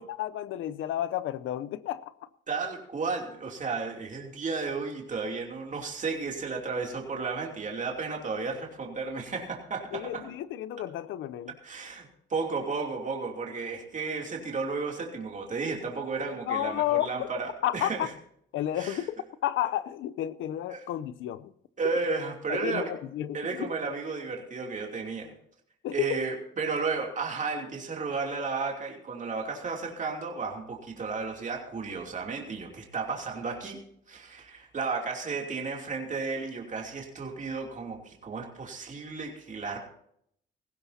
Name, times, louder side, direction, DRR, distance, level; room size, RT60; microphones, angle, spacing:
voice 1, 0.0-2.0 9.9-11.5 16.5-17.1 17.6-18.1 18.5-21.5 22.5-23.7 25.8-26.2, left 12 dB, 80° left, 15 dB, 0.7 m, -31 dB
voice 2, 2.5-10.3 11.6-18.1 18.7-19.0 20.7-20.9 21.8-22.9 23.3-25.3 25.9-33.8 34.1-39.8, right 4 dB, 40° right, 1 dB, 2.9 m, -33 dB
18.0 x 15.5 x 2.8 m, 0.69 s
cardioid pair, 90°, 20 cm